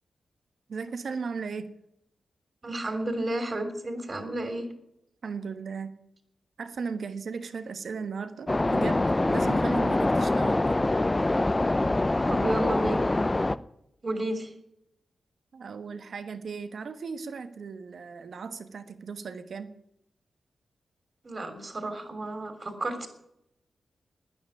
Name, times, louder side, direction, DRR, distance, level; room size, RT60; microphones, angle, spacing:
voice 1, 0.7-1.7 5.2-5.9 6.6-10.8 15.5-19.7, right 5 dB, 70° right, 10 dB, 1.3 m, -36 dB
voice 2, 2.6-4.7 12.3-13.2 14.0-14.5 21.2-23.1, right 1 dB, 45° right, 8 dB, 3.3 m, -32 dB
sound 1, 8.5-13.6, left 2 dB, 25° left, 0.6 m, -24 dB
11.5 x 9.9 x 9.6 m, 0.79 s
supercardioid pair, 40°, 0 cm